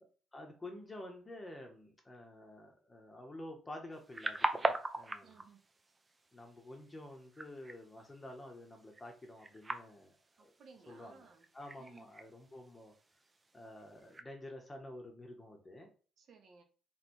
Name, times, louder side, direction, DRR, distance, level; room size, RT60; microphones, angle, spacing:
voice 1, 0.3-5.4 6.3-10.5 10.9-11.3 11.5-12.9 13.5-15.9, left 1 dB, 15° left, 1.0 m, -50 dB
sound 1, 3.9-14.2, right 3 dB, 20° right, 0.5 m, -42 dB
voice 2, 5.2-5.7 10.4-11.5 11.8-12.1 16.2-16.6, right 5 dB, 50° right, 1.1 m, -59 dB
3.5 x 3.3 x 4.4 m
cardioid pair, 145°, 0 cm